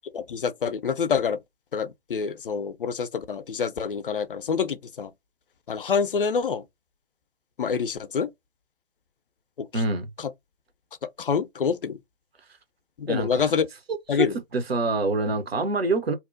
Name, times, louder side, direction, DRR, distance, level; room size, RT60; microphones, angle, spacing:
voice 1, 0.1-1.4 1.7-5.1 5.7-6.6 7.6-8.3 9.6-9.8 10.2-10.3 11.2-12.0 13.0-13.7 14.1-14.3, left 6 dB, 60° left, 0.4 m, -26 dB
voice 2, 9.7-10.1 13.1-13.5 14.1-14.3 14.5-16.1, right 2 dB, 70° right, 0.7 m, -25 dB
2.8 x 2.0 x 2.4 m
figure-of-eight pair, 135°, 32 cm